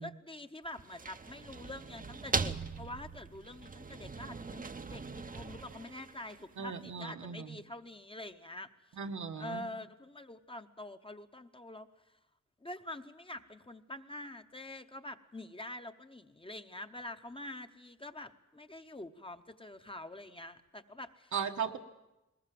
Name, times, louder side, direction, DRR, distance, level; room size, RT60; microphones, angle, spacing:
voice 1, 0.0-9.0 9.4-12.2 12.6-21.3, left 1 dB, 20° left, 8 dB, 0.8 m, -46 dB
sound 1, 0.6-6.7, right 4 dB, 30° right, 0.7 m, -40 dB
voice 2, 6.6-7.5 9.0-9.7 21.3-21.8, right 6 dB, 80° right, 5 dB, 1.5 m, -37 dB
20.5 x 20.5 x 7.6 m, 0.97 s
wide cardioid pair, 125°, 29 cm